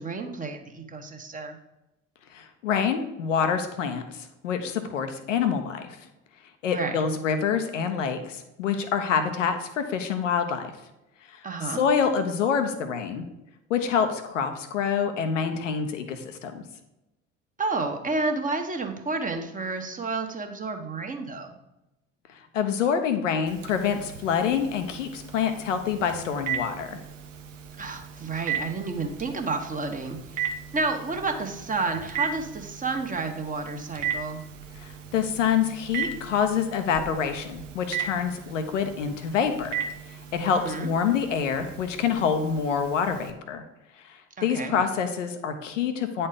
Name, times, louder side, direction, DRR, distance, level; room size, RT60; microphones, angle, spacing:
voice 1, 0.0-1.6 6.7-7.0 11.4-11.8 17.6-21.6 27.8-30.4 30.7-34.4 40.5-40.9 44.4-44.8, right 3 dB, 20° right, 4 dB, 1.4 m, -30 dB
voice 2, 2.3-6.0 6.6-10.7 11.3-13.2 13.7-16.6 22.3-27.0 34.8-39.7 40.1-43.6 44.0-46.3, left 7 dB, 75° left, 7 dB, 1.0 m, -26 dB
Telephone, 23.5-43.3, right 7 dB, 75° right, 0.9 m, -37 dB
9.4 x 4.4 x 5.1 m, 0.95 s
figure-of-eight pair, 60°, 38 cm